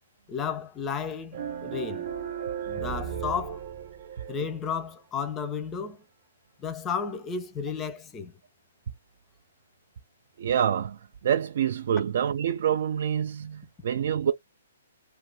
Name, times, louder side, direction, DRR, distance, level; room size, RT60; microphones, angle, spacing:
voice 1, 0.3-2.1 2.7-3.6 4.3-6.0 6.6-8.3, left 6 dB, 15° left, 0.5 m, -33 dB
sound 1, 1.3-4.6, right 8 dB, 40° right, 0.8 m, -35 dB
voice 2, 10.4-14.3, right 9 dB, 60° right, 0.3 m, -27 dB
2.5 x 2.3 x 2.8 m
hypercardioid pair, 145°, 0 cm